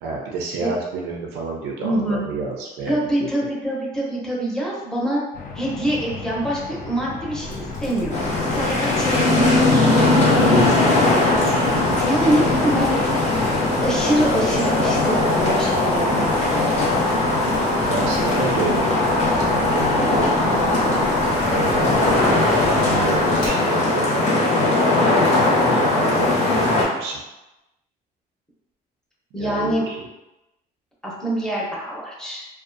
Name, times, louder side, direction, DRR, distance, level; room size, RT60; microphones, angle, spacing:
voice 1, 0.0-3.5 17.8-18.9 19.4-20.8 21.5-24.6 25.5-27.2 29.4-29.9, right 4 dB, 90° right, -1 dB, 0.4 m, -29 dB
voice 2, 1.8-2.2 2.9-5.2 5.5-11.6 12.1-13.0 13.8-17.1 29.3-29.8 31.0-32.5, right 1 dB, 5° left, -5 dB, 0.7 m, -25 dB
sound 1, 5.3-19.7, left 4 dB, 55° left, 0.4 m, -35 dB
Boiling, 7.4-23.5, equal, 75° left, 0.8 m, -36 dB
sound 2, 8.1-26.8, left 2 dB, 40° left, 0.8 m, -19 dB
2.5 x 2.2 x 2.4 m, 1.0 s
cardioid pair, 110°, 17 cm